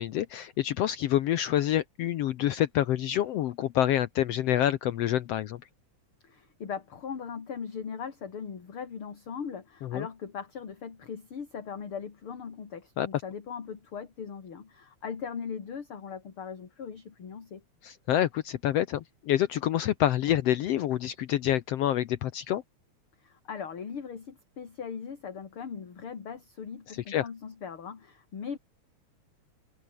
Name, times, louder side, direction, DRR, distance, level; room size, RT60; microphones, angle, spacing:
voice 1, 0.0-5.6 9.8-10.1 13.0-13.1 17.8-22.6 27.1-27.3, left 12 dB, 70° left, 1.7 m, -27 dB
voice 2, 6.2-17.6 23.2-28.6, left 6 dB, 45° left, 3.4 m, -39 dB
omnidirectional pair, 3.4 m